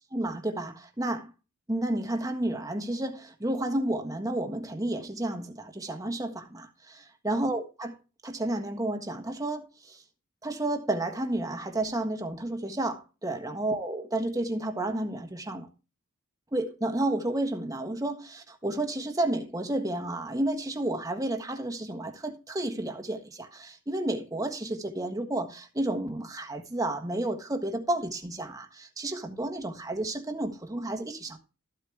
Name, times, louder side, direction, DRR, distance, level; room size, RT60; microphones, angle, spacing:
voice 1, 0.1-1.3 1.7-7.9 8.2-10.0 10.4-15.7 16.5-31.4, right 1 dB, 15° right, 1.4 m, -31 dB
14.0 x 8.3 x 3.4 m
head